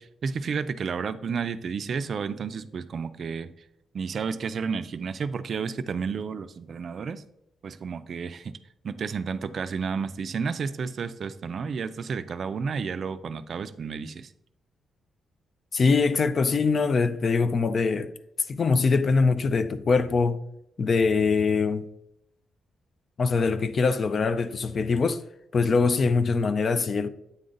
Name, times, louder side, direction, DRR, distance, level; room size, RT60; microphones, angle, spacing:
voice 1, 0.0-3.5 3.9-7.2 7.6-8.5 8.8-14.3, right 5 dB, 50° right, 0.4 m, -31 dB
voice 2, 15.7-18.1 18.5-20.4 20.8-21.9 23.2-25.2 25.5-27.1, left 4 dB, 45° left, 0.4 m, -23 dB
8.5 x 3.9 x 3.8 m
cardioid pair, 115°, 0 cm